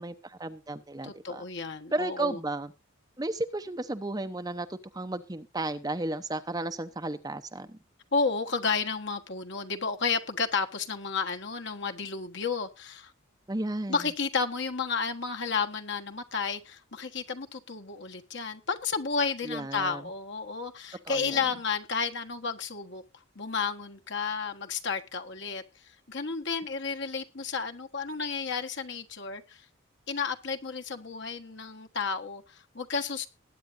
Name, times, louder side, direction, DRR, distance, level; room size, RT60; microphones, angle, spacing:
voice 1, 0.0-1.4 1.9-2.7 3.2-7.8 13.5-14.0 19.4-20.0 21.0-21.5, right 2 dB, 20° right, 0.7 m, -33 dB
voice 2, 1.0-2.4 8.1-13.1 13.9-23.0 23.3-29.6 30.1-33.3, left 5 dB, 55° left, 1.4 m, -32 dB
20.0 x 9.3 x 2.6 m
head